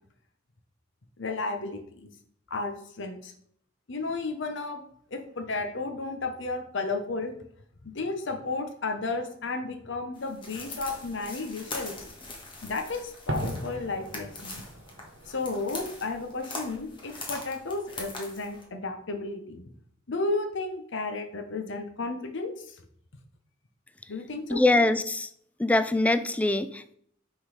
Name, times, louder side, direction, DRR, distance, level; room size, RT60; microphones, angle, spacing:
voice 1, 1.2-2.1 2.5-3.3 3.9-4.8 5.1-7.3 7.8-12.0 12.6-14.6 15.3-19.7 20.1-22.8 24.1-24.6, left 3 dB, 65° left, 6 dB, 0.9 m, -33 dB
sound 1, 10.1-18.6, left 2 dB, 25° left, 1.4 m, -42 dB
Fireworks, 10.6-16.3, right 1 dB, 80° right, 1.1 m, -41 dB
voice 2, 24.5-25.3 25.6-27.0, left 2 dB, 5° left, 11 dB, 0.3 m, -23 dB
6.1 x 3.9 x 4.9 m, 0.65 s
head